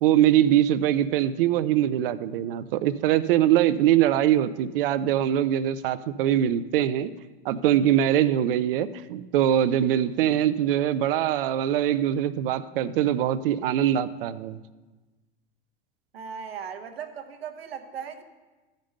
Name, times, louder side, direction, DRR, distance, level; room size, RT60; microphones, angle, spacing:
voice 1, 0.0-7.1 7.4-14.6, right 11 dB, 65° right, 16 dB, 0.6 m, -23 dB
voice 2, 16.1-18.2, right 7 dB, 80° right, 7 dB, 0.9 m, -37 dB
13.5 x 5.3 x 5.3 m, 1.2 s
hypercardioid pair, 90°, 30 cm